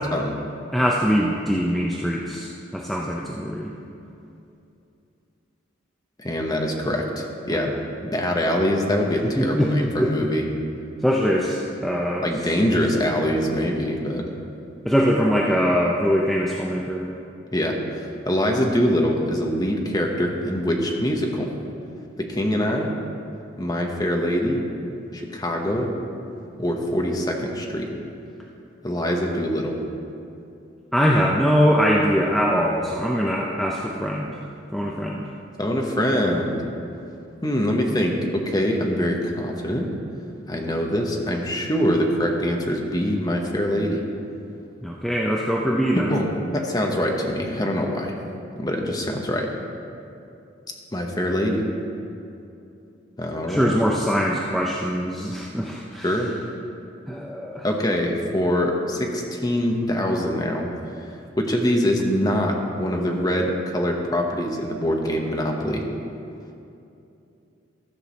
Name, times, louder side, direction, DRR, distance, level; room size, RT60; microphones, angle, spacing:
voice 1, 0.7-3.7 7.5-7.6 9.2-10.3 11.0-12.3 14.8-17.1 30.9-34.4 34.7-35.3 44.8-46.2 53.5-56.2 57.1-57.6, equal, ahead, -2 dB, 0.5 m, -22 dB
voice 2, 6.2-7.7 8.0-10.5 12.2-14.3 17.5-21.5 22.2-22.9 23.6-24.6 25.1-25.9 26.6-27.9 28.8-29.8 35.6-36.6 37.4-39.9 40.5-44.0 45.9-48.1 48.6-49.5 50.9-51.6 53.2-53.8 56.0-56.3 57.6-60.7 61.4-65.8, equal, 20° left, 1 dB, 0.9 m, -24 dB
13.5 x 4.7 x 7.0 m, 2.7 s
head